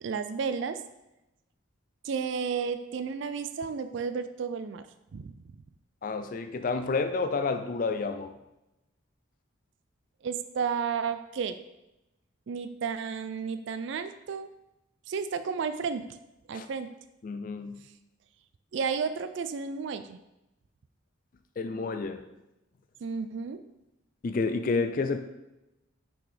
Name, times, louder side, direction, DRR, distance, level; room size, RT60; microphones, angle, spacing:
voice 1, 0.0-0.8 2.0-4.8 5.1-5.3 10.2-11.6 12.5-14.5 15.1-16.0 16.5-16.9 18.7-20.2 23.0-23.6, right 6 dB, 65° right, 11 dB, 0.3 m, -32 dB
voice 2, 6.0-8.3 16.5-16.7 17.2-17.8 21.6-22.2 24.2-25.2, left 4 dB, 40° left, 8 dB, 0.4 m, -30 dB
5.9 x 5.8 x 3.4 m, 0.92 s
head